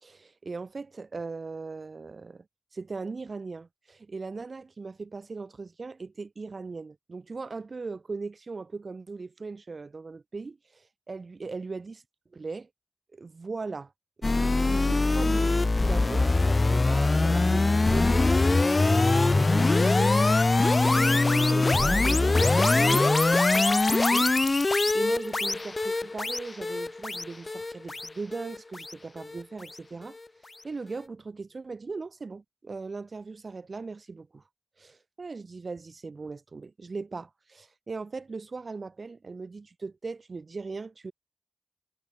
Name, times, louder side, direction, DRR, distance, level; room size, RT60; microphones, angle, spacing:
voice 1, 0.0-2.4 2.7-12.0 12.3-12.7 13.1-13.9 14.2-20.2 20.5-24.3 24.6-30.2 30.6-34.4 34.8-41.1, right 4 dB, 60° right, 1.2 m, -39 dB
sound 1, 14.2-29.4, left 3 dB, 40° left, 0.4 m, -23 dB
wide cardioid pair, 80°, 0 cm